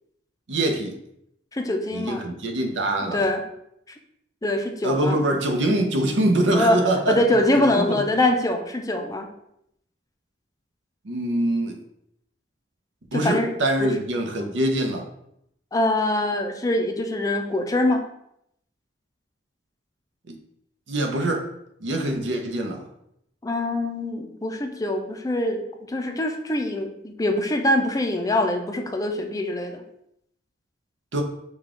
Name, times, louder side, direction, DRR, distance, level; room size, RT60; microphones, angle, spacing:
voice 1, 0.5-0.9 1.9-3.3 4.8-7.2 7.6-8.0 11.0-11.8 13.1-15.1 20.3-20.4 20.9-21.5 21.8-22.8 31.1-31.2, right 1 dB, 75° right, 3 dB, 0.7 m, -24 dB
voice 2, 1.5-2.2 3.1-3.4 4.4-5.2 6.5-9.3 13.1-13.5 13.8-13.9 15.7-18.0 23.4-29.8, left 1 dB, 20° left, 4 dB, 0.4 m, -24 dB
5.1 x 2.3 x 3.7 m, 0.77 s
head